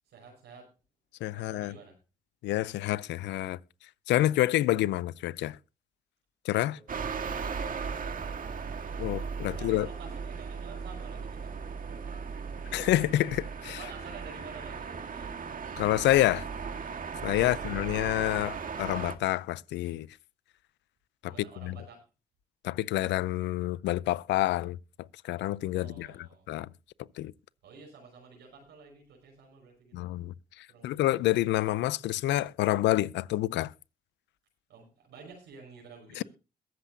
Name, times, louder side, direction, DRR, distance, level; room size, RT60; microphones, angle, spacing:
voice 1, 0.1-0.7 1.3-1.9 9.4-11.5 11.8-12.3 13.8-15.4 17.4-17.6 21.2-22.0 25.7-26.5 27.6-30.1 30.7-31.1 34.7-36.2, right 5 dB, 75° right, 5.5 m, -51 dB
voice 2, 1.2-1.7 2.4-3.6 4.1-5.6 6.4-6.8 9.0-9.9 12.7-13.8 15.8-16.5 17.2-20.1 21.2-21.3 21.6-21.8 22.6-24.8 25.2-26.7 27.2-27.3 29.9-33.7 36.2-36.3, left 15 dB, 75° left, 0.5 m, -28 dB
sound 1, 6.9-19.2, right 5 dB, 50° right, 1.7 m, -37 dB
22.0 x 7.6 x 2.7 m
supercardioid pair, 55°, 18 cm